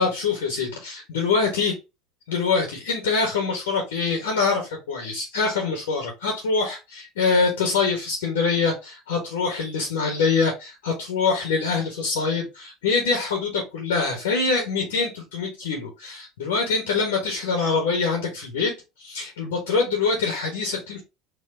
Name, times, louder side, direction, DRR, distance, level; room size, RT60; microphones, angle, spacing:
voice 1, 0.0-1.8 2.3-18.7 19.0-21.0, left 4 dB, 70° left, 1.0 m, -24 dB
4.6 x 2.4 x 2.5 m
figure-of-eight pair, 70°, 0 cm